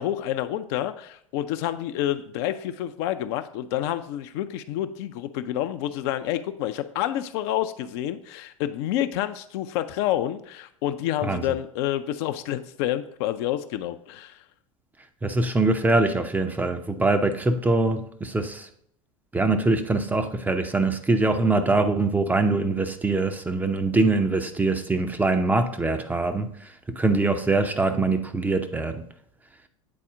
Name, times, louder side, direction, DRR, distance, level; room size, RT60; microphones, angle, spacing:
voice 1, 0.0-14.4, left 12 dB, 45° left, 0.4 m, -28 dB
voice 2, 15.2-18.7 19.3-29.1, right 3 dB, 10° right, 0.5 m, -23 dB
8.6 x 4.1 x 3.7 m
figure-of-eight pair, 85°, 18 cm